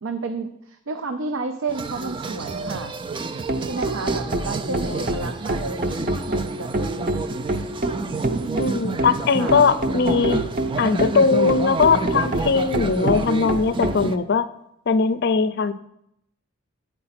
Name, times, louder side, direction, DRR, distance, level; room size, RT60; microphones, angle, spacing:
voice 1, 0.0-2.9 3.7-7.2 8.0-8.7 9.4-9.5, right 3 dB, 75° right, 7 dB, 0.5 m, -31 dB
sound 1, 1.7-14.2, right 3 dB, 25° right, 0.3 m, -30 dB
sound 2, 3.1-14.0, right 1 dB, 40° right, 0.7 m, -27 dB
voice 2, 5.0-5.3 8.6-10.4 10.8-14.5 14.9-15.7, left 5 dB, 50° left, 14 dB, 0.4 m, -20 dB
8.7 x 4.6 x 5.8 m, 0.79 s
head